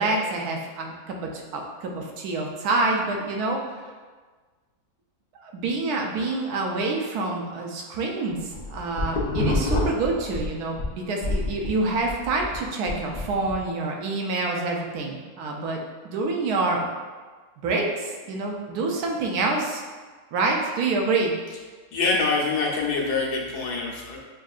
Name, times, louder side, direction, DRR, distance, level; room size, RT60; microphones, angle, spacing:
voice 1, 0.0-3.6 5.4-16.9 17.6-19.8 20.3-21.3, right 3 dB, 85° right, 1 dB, 1.1 m, -27 dB
sound 1, 8.4-10.9 11.2-13.6, left 2 dB, 50° left, 0.7 m, -27 dB
voice 2, 21.9-24.2, left 3 dB, 90° left, -2 dB, 1.3 m, -25 dB
6.2 x 2.4 x 2.4 m, 1.4 s
omnidirectional pair, 1.6 m